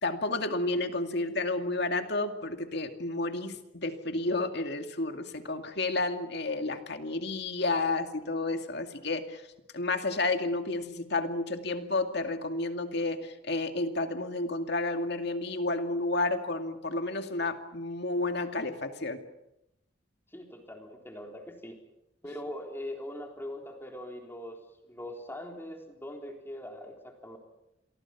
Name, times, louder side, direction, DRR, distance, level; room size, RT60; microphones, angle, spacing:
voice 1, 0.0-9.4 9.7-19.2, left 2 dB, 60° left, 6 dB, 2.3 m, -31 dB
voice 2, 20.3-21.8 22.2-24.6 24.8-27.4, left 1 dB, 10° left, 2 dB, 3.8 m, -41 dB
29.0 x 22.5 x 6.0 m, 0.86 s
head